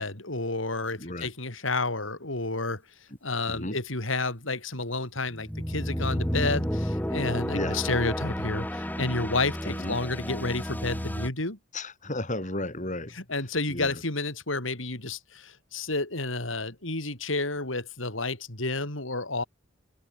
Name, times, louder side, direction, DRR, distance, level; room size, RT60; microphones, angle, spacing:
voice 1, 0.0-2.8 3.2-11.6 13.2-19.4, left 3 dB, 80° left, 5.9 m, -30 dB
voice 2, 1.0-1.3 3.5-3.8 7.5-7.8 9.7-10.0 11.7-13.2 13.7-14.0, left 1 dB, 40° left, 6.2 m, -34 dB
sound 1, 5.3-11.3, equal, 10° left, 4.4 m, -31 dB
head